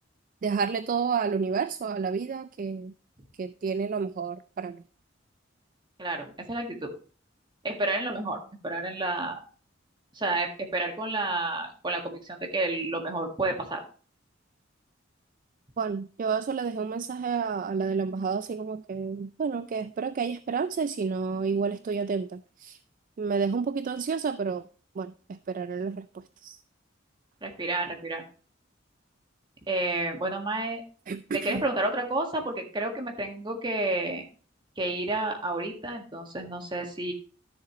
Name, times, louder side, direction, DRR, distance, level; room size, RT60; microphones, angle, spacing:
voice 1, 0.4-2.9 3.4-4.8 15.8-22.8 23.2-24.7 25.0-26.6 31.1-31.6, right 5 dB, 45° right, 13 dB, 0.3 m, -30 dB
voice 2, 6.0-6.9 7.6-9.4 10.1-13.8 27.4-28.2 29.7-30.8 31.3-34.2 34.8-37.1, right 2 dB, 25° right, 3 dB, 1.7 m, -30 dB
12.5 x 7.1 x 3.0 m, 0.39 s
head